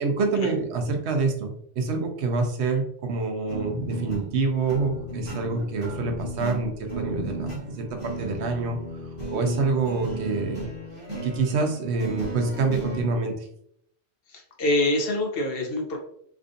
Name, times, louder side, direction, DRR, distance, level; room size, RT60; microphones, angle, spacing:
voice 1, 0.0-8.8 9.3-10.6 11.2-13.5, right 4 dB, 80° right, 4 dB, 0.9 m, -26 dB
sound 1, 3.5-13.0, equal, 30° right, 1.3 m, -35 dB
voice 2, 14.3-16.0, left 1 dB, 65° left, 2 dB, 0.8 m, -25 dB
3.5 x 2.4 x 2.5 m, 0.69 s
omnidirectional pair, 1.1 m